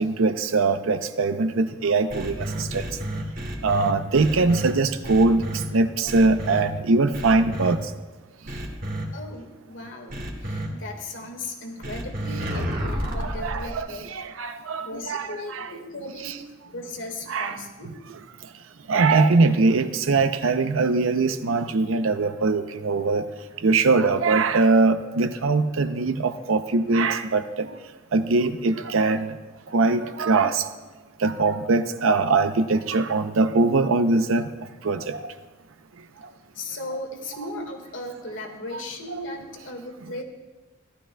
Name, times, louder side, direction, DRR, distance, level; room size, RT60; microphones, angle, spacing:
voice 1, 0.0-2.4 2.7-2.8 3.6-5.4 5.7-7.8 13.2-13.9 14.1-15.7 16.2-16.3 17.3-17.5 18.9-23.2 23.6-27.7 28.1-29.3 29.7-30.6 31.2-34.4 34.8-35.3, right 3 dB, 80° right, 9 dB, 0.6 m, -22 dB
sound 1, 2.1-4.7 5.0-5.6 6.1-6.6 7.1-7.7 8.5-9.0 10.1-10.7 11.8-13.8, right 1 dB, 45° right, 1.6 m, -30 dB
voice 2, 9.1-14.1 14.8-16.3 16.7-17.9 18.9-19.1 36.6-40.2, left 2 dB, 70° left, 3 dB, 1.7 m, -37 dB
17.0 x 12.5 x 2.2 m, 1.2 s
head